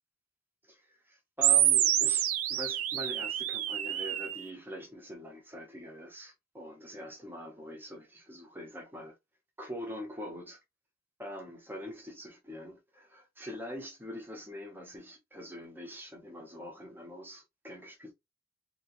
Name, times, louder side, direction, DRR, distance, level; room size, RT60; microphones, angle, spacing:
voice 1, 0.7-9.2 9.6-10.6 11.2-18.1, equal, 10° right, 0.8 m, -44 dB
sound 1, 1.4-4.4, right 11 dB, 80° right, 0.5 m, -27 dB
3.0 x 2.8 x 2.9 m
head